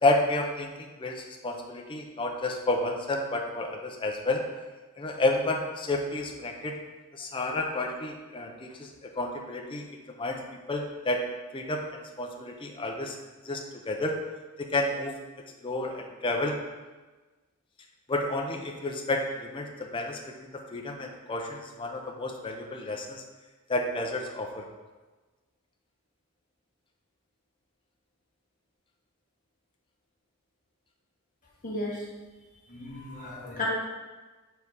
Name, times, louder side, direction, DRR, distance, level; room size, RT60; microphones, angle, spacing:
voice 1, 0.0-4.4 5.0-6.8 7.1-8.9 9.2-9.8 10.2-10.4 10.7-11.2 11.5-13.1 13.5-13.6 13.9-14.2 14.6-15.1 15.6-16.6 18.1-19.7 19.9-23.2 23.7-24.6, left 2 dB, 25° left, 1 dB, 0.6 m, -30 dB
voice 2, 31.6-32.0 32.7-33.7, left 2 dB, 40° left, -5 dB, 1.6 m, -35 dB
4.7 x 4.5 x 5.5 m, 1.2 s
head